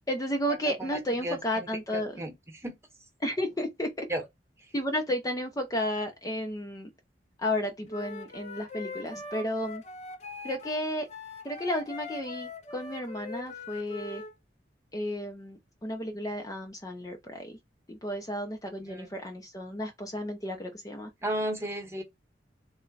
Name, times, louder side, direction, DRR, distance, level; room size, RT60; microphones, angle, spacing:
voice 1, 0.1-2.2 3.2-4.1 4.7-6.9 7.4-9.8 10.4-11.1 11.4-14.2 14.9-17.6 17.9-21.1, equal, 20° left, 0.7 m, -33 dB
voice 2, 0.8-2.7 4.1-4.2 18.9-19.1 21.2-22.0, right 1 dB, 15° right, 1.1 m, -34 dB
Wind instrument woodwind instrument, 7.9-14.3, left 4 dB, 40° left, 1.0 m, -42 dB
3.5 x 3.2 x 4.0 m
head